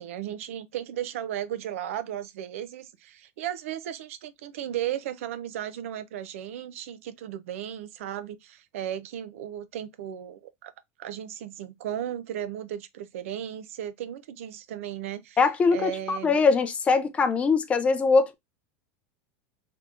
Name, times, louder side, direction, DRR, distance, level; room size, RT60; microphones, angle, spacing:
voice 1, 0.0-10.7 11.0-15.4 15.7-16.4, right 11 dB, 85° right, 0.5 m, -35 dB
voice 2, 15.4-18.3, left 4 dB, 20° left, 0.4 m, -22 dB
3.4 x 2.9 x 2.4 m
supercardioid pair, 155°, 7 cm